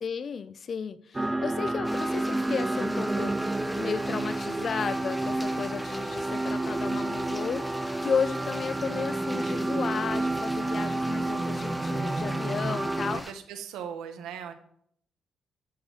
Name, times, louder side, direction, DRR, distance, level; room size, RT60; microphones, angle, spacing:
voice 1, 0.0-0.9 1.4-3.3 3.7-7.6 8.0-13.2, left 6 dB, 50° left, 0.6 m, -33 dB
sound 1, 1.1-13.2, right 2 dB, 15° right, 0.5 m, -30 dB
sound 2, 1.8-13.3, equal, 5° left, 1.3 m, -42 dB
voice 2, 13.0-14.5, right 8 dB, 90° right, 1.3 m, -39 dB
11.5 x 4.6 x 7.2 m
cardioid pair, 90°, 0 cm